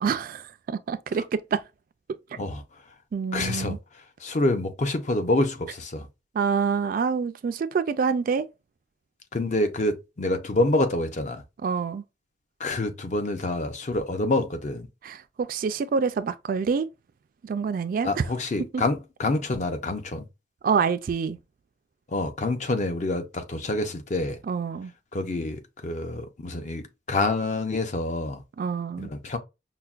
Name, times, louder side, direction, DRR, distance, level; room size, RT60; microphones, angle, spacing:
voice 1, 0.0-1.6 3.1-3.8 6.3-8.5 11.6-12.0 15.0-16.9 17.4-18.2 20.6-21.4 24.5-24.9 28.6-29.1, right 5 dB, 50° right, 0.3 m, -26 dB
voice 2, 3.3-3.8 4.2-6.1 9.3-11.4 12.6-14.9 18.0-20.3 22.1-24.4 25.1-28.4 29.0-29.4, left 2 dB, 40° left, 0.6 m, -27 dB
5.5 x 2.2 x 2.4 m
head